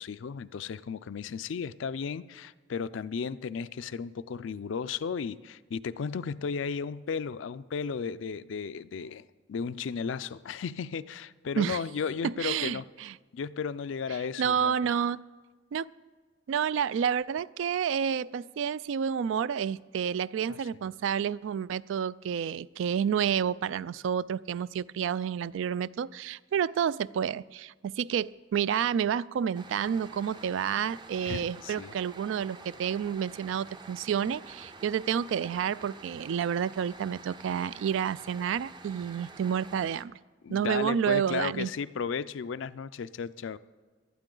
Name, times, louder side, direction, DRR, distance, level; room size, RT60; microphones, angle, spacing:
voice 1, 0.0-9.2 9.5-12.9 13.3-14.9 20.5-20.6 31.3-32.0 40.4-43.6, left 6 dB, 75° left, 0.4 m, -34 dB
voice 2, 12.2-13.1 14.4-15.2 15.7-15.9 16.5-40.1 40.5-41.7, right 8 dB, 75° right, 0.3 m, -29 dB
sound 1, 29.5-40.0, right 3 dB, 25° right, 0.5 m, -48 dB
18.0 x 12.0 x 3.8 m
head